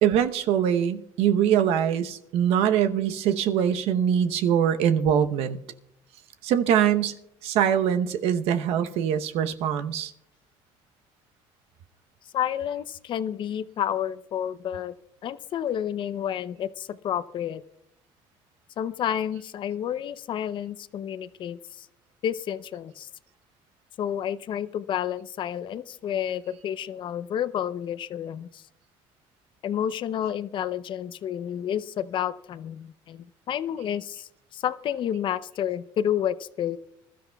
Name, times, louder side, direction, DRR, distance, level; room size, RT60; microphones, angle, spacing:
voice 1, 0.0-5.6 6.4-7.2 7.4-10.1, right 9 dB, 70° right, 0.9 m, -23 dB
voice 2, 12.3-14.9 15.2-17.6 18.8-21.9 22.2-23.1 24.0-28.6 29.6-36.8, left 10 dB, 50° left, 0.6 m, -30 dB
25.5 x 13.0 x 2.3 m
supercardioid pair, 95°, 11 cm